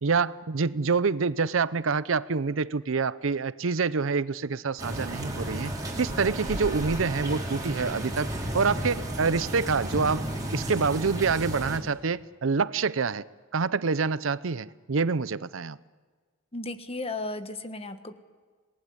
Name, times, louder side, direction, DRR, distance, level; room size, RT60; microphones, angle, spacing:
voice 1, 0.0-5.7 6.0-10.2 10.5-13.2 13.5-15.8, right 4 dB, 80° right, 0.7 m, -26 dB
sound 1, 4.8-11.8, right 1 dB, 20° right, 4.8 m, -33 dB
voice 2, 16.5-18.1, left 2 dB, 30° left, 1.4 m, -35 dB
27.0 x 19.5 x 9.7 m
head